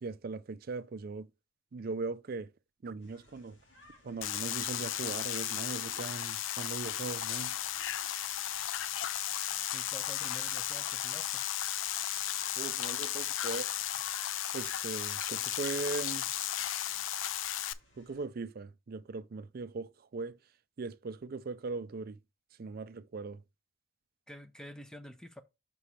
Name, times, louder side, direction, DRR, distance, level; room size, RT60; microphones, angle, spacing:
voice 1, 0.0-1.3 1.7-2.5 2.8-3.6 4.0-7.6 12.6-13.7 14.5-16.3 17.9-20.4 20.8-22.2 22.6-23.4, right 4 dB, 50° right, 0.4 m, -39 dB
sound 1, 3.0-18.3, left 2 dB, 65° left, 2.5 m, -61 dB
sound 2, 4.2-17.7, left 12 dB, 80° left, 0.5 m, -35 dB
voice 2, 9.7-11.4 24.3-25.4, equal, 5° left, 0.6 m, -48 dB
6.0 x 3.2 x 5.6 m
head